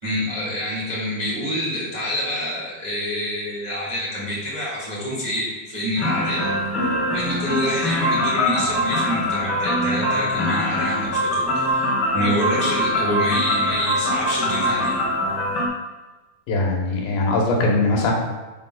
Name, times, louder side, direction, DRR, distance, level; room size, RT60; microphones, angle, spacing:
voice 1, 0.0-6.5 7.1-15.0, equal, 20° right, -7 dB, 1.2 m, -27 dB
sound 1, 6.0-15.7, left 1 dB, 50° left, 1.3 m, -23 dB
voice 2, 16.5-18.1, left 2 dB, 75° left, -1 dB, 2.8 m, -21 dB
10.0 x 7.5 x 2.3 m, 1.2 s
omnidirectional pair, 4.3 m